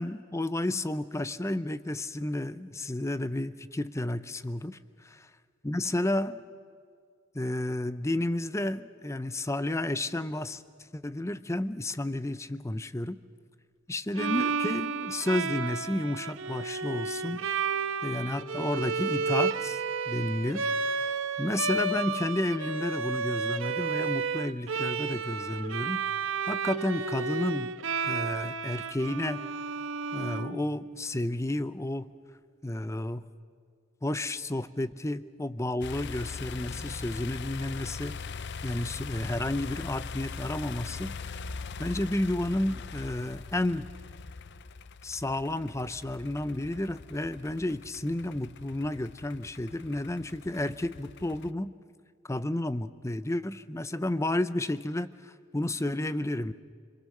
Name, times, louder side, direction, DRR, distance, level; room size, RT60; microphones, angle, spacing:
voice 1, 0.0-4.8 5.6-6.4 7.3-10.6 10.9-13.2 13.9-17.5 18.0-26.0 26.5-27.7 28.1-29.5 30.1-32.1 32.6-33.3 34.0-41.4 41.8-43.9 45.0-51.7 52.2-56.5, left 1 dB, 15° left, 14 dB, 0.6 m, -31 dB
Bowed string instrument, 14.1-31.1, right 5 dB, 65° right, 1.0 m, -32 dB
sound 1, 35.8-51.5, left 4 dB, 55° left, 0.6 m, -41 dB
29.0 x 22.5 x 6.6 m, 2.1 s
head